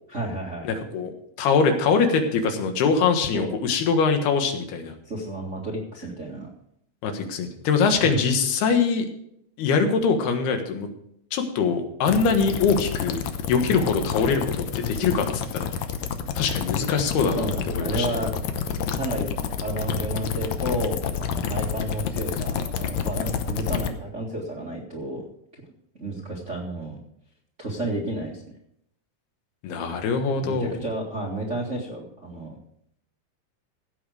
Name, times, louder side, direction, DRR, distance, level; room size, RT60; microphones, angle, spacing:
voice 1, 0.1-0.7 3.3-3.5 5.0-6.5 8.1-8.2 17.4-18.3 18.9-25.2 25.9-27.0 27.6-28.4 30.4-32.6, right 1 dB, 30° right, -1 dB, 1.3 m, -31 dB
voice 2, 0.7-1.1 1.4-4.9 7.0-9.1 9.6-10.9 11.3-15.8 16.4-18.1 29.6-30.8, left 5 dB, 90° left, 6 dB, 3.5 m, -23 dB
sound 1, 12.1-23.9, left 7 dB, 75° left, 1.7 m, -29 dB
16.0 x 8.1 x 5.0 m, 0.72 s
omnidirectional pair, 4.4 m